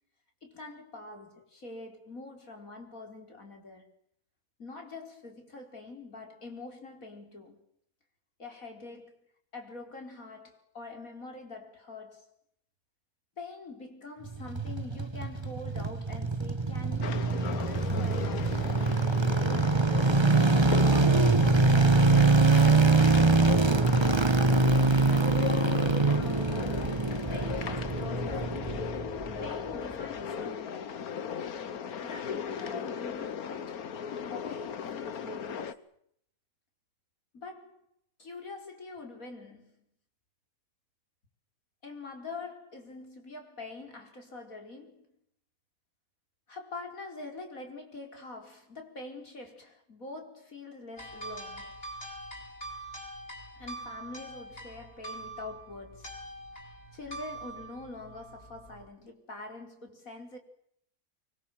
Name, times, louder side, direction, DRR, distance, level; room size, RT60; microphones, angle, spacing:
voice 1, 0.4-3.9 4.6-7.6 8.4-9.2 9.5-12.3 13.4-18.7 20.2-23.3 24.1-25.6 27.3-28.8 29.4-31.1 32.0-33.9 34.3-35.9 37.3-37.8 38.2-39.8 41.8-45.1 46.5-51.8 53.6-56.1 56.9-60.4, left 3 dB, 70° left, 5.2 m, -44 dB
sound 1, 14.3-29.5 29.7-29.8, right 3 dB, 20° right, 1.2 m, -24 dB
sound 2, 17.0-35.7, left 7 dB, 90° left, 1.7 m, -37 dB
sound 3, 51.0-58.9, right 1 dB, 40° left, 6.5 m, -44 dB
25.0 x 24.0 x 7.8 m
omnidirectional pair, 1.5 m